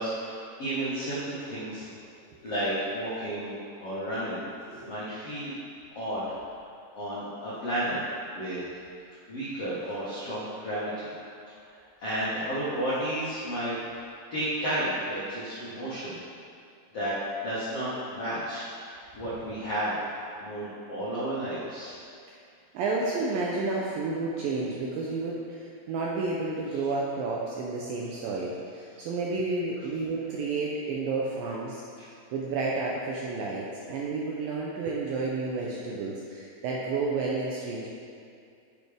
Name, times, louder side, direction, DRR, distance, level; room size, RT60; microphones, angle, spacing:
voice 1, 0.0-1.8 2.4-4.4 4.8-5.5 6.0-6.3 6.9-8.0 8.3-8.6 9.3-11.1 12.0-14.0 14.3-16.2 16.9-19.9 20.4-22.0, right 1 dB, 50° left, -11 dB, 1.9 m, -32 dB
voice 2, 22.7-31.8 32.3-37.9, right 3 dB, 80° right, -3 dB, 2.0 m, -31 dB
10.0 x 6.4 x 3.5 m, 2.4 s
omnidirectional pair, 4.9 m